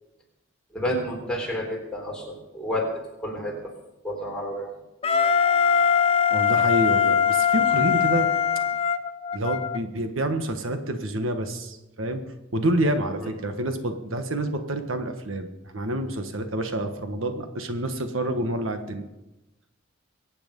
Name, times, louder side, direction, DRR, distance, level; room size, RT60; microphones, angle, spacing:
voice 1, 0.7-2.9 3.2-3.5 4.0-4.7 13.2-13.3, equal, 5° left, -2 dB, 3.6 m, -30 dB
Wind instrument woodwind instrument, 5.0-9.8, left 8 dB, 30° left, 0.6 m, -21 dB
voice 2, 6.3-8.3 9.3-12.2 12.5-19.1, right 1 dB, 80° right, 7 dB, 1.4 m, -28 dB
22.5 x 8.9 x 5.3 m, 0.97 s
head